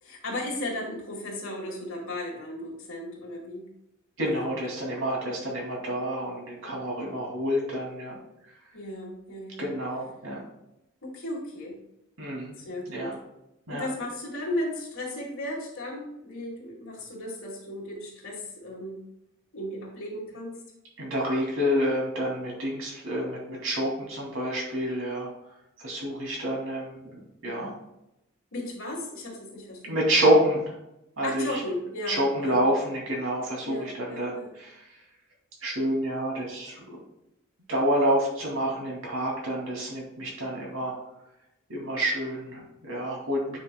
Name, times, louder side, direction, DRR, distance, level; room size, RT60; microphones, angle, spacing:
voice 1, 0.0-3.7 4.2-4.5 8.7-9.6 11.0-11.8 12.6-13.1 13.7-19.0 19.5-20.6 28.5-30.0 31.2-32.6 33.6-34.5, left 1 dB, 85° left, -3 dB, 2.5 m, -35 dB
voice 2, 4.2-8.2 9.6-10.4 12.2-12.6 12.9-13.1 13.7-13.8 21.0-25.3 25.8-27.7 29.9-30.7 31.2-31.6 32.1-34.7 35.6-37.0 37.7-40.9 41.7-43.6, equal, 70° right, -3 dB, 2.6 m, -28 dB
9.1 x 5.5 x 2.3 m, 0.85 s
head